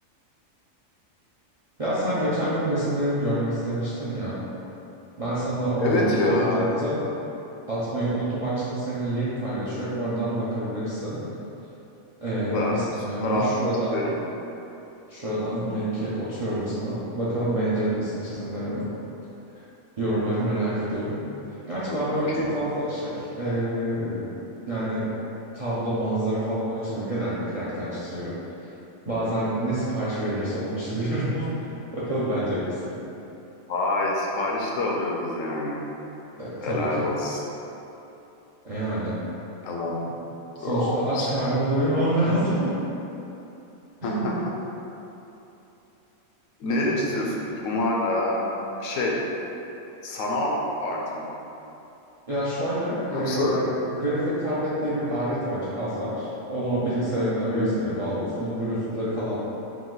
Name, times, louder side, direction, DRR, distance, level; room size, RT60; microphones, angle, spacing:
voice 1, 1.8-4.4 5.2-7.0 7.7-11.3 12.2-14.0 15.1-18.9 19.5-19.6 20.0-21.2 21.7-24.3 24.7-25.1 25.5-28.4 29.1-31.5 31.9-32.9 36.4-37.1 38.6-39.2 40.6-42.7 44.0-44.4 46.8-47.1 52.3-59.4, right 1 dB, 45° right, -10 dB, 0.4 m, -27 dB
voice 2, 5.8-6.6 12.5-13.5 13.9-14.1 21.1-21.2 22.1-22.5 33.7-35.8 36.6-37.4 39.6-40.2 40.6-41.3 44.0-44.3 46.6-48.5 48.8-49.2 50.0-51.3 53.1-53.6 57.5-57.8, left 2 dB, 70° left, -2 dB, 1.0 m, -26 dB
4.7 x 2.4 x 3.8 m, 3.0 s
omnidirectional pair, 1.4 m